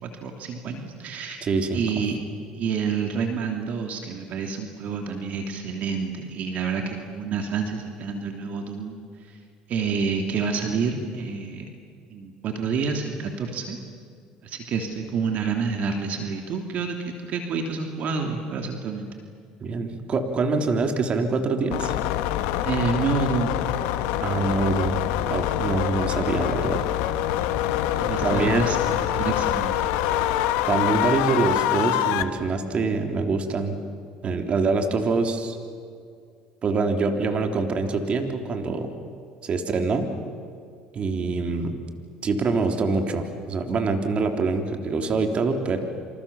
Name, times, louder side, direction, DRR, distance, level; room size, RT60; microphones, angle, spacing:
voice 1, 0.0-1.4 1.7-2.2 2.6-9.0 9.7-11.7 12.1-13.8 14.4-19.1 22.6-23.6 27.9-29.7, right 5 dB, 55° right, 4 dB, 3.0 m, -28 dB
voice 2, 1.4-1.8 19.6-21.9 24.2-26.8 28.2-28.7 30.7-33.8 34.2-35.6 36.6-38.9 39.4-40.1 40.9-41.7 42.2-45.8, right 4 dB, 40° right, 5 dB, 3.4 m, -25 dB
sound 1, 21.7-32.2, left 12 dB, 80° left, 1.3 m, -25 dB
28.5 x 27.0 x 7.2 m, 2.2 s
supercardioid pair, 90°, 3 cm